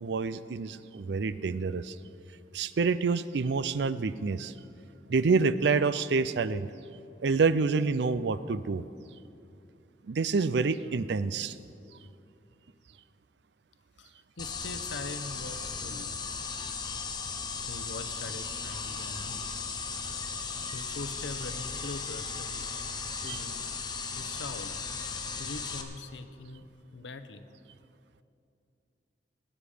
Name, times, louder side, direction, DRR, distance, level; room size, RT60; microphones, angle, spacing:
voice 1, 0.0-2.0 2.5-4.5 5.1-6.7 7.2-8.8 10.1-11.6 23.3-23.4, right 4 dB, 70° right, 15 dB, 0.4 m, -27 dB
voice 2, 14.0-16.2 17.7-19.5 20.7-23.7 24.1-24.7 25.4-27.4, left 3 dB, 85° left, 10 dB, 0.8 m, -43 dB
sound 1, 14.4-25.8, left 5 dB, 25° left, 0.9 m, -36 dB
19.0 x 10.0 x 5.0 m, 2.6 s
head